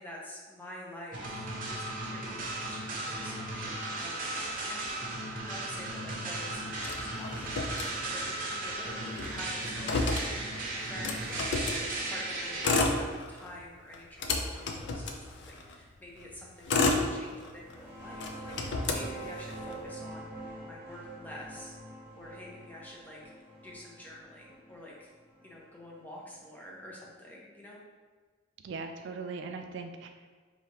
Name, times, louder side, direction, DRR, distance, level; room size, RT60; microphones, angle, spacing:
voice 1, 0.0-21.8 22.1-23.2 23.6-25.1 25.4-27.8, left 1 dB, 10° left, -4 dB, 0.7 m, -48 dB
sound 1, 1.1-12.8, right 2 dB, 50° right, 0.8 m, -36 dB
Motor vehicle (road), 6.8-8.4 8.7-8.8 9.1-11.8 12.5-13.5 13.9-15.7 16.3-17.7 18.2-19.7, left 3 dB, 65° left, 0.5 m, -31 dB
sound 2, 17.5-26.8, right 2 dB, 10° right, 1.3 m, -46 dB
voice 2, 28.6-30.3, right 4 dB, 70° right, 6 dB, 0.3 m, -40 dB
4.8 x 2.8 x 2.8 m, 1.4 s
head